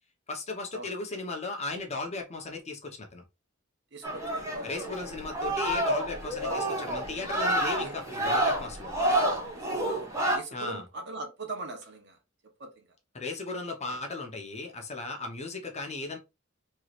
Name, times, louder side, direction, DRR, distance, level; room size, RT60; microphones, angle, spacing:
voice 1, 0.3-3.2 4.6-8.9 10.5-10.8 13.1-16.2, left 3 dB, 30° left, 0.9 m, -36 dB
voice 2, 3.9-4.7 6.4-7.9 8.9-12.2 12.6-12.9, right 2 dB, 55° right, 1.1 m, -42 dB
sound 1, 4.0-10.4, right 1 dB, 15° right, 1.3 m, -29 dB
4.6 x 3.2 x 2.5 m
head